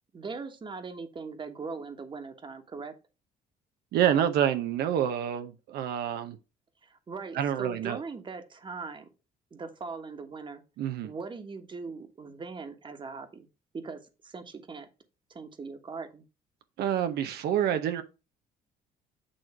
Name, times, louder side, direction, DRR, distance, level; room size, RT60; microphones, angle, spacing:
voice 1, 0.1-2.9 6.8-9.1 9.5-10.6 11.0-13.5 13.7-14.9 15.3-16.2, right 4 dB, 30° right, 1.3 m, -40 dB
voice 2, 3.9-6.4 7.3-8.0 10.8-11.1 16.8-18.0, right 10 dB, 75° right, 0.8 m, -27 dB
8.8 x 3.1 x 5.8 m
cardioid pair, 110°, 17 cm